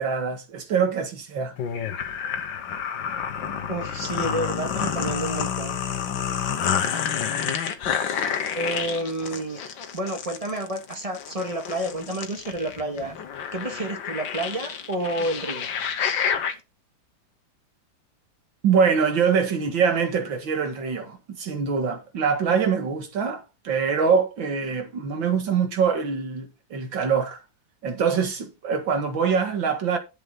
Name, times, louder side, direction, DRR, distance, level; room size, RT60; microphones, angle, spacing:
voice 1, 0.0-1.5 18.6-27.4 27.8-30.0, right 6 dB, 80° right, 2.5 m, -24 dB
sound 1, 1.6-16.5, left 7 dB, 75° left, 1.8 m, -29 dB
voice 2, 3.7-5.8 8.5-13.2 13.5-15.7, right 1 dB, 20° right, 1.8 m, -30 dB
11.0 x 6.9 x 3.9 m
omnidirectional pair, 2.1 m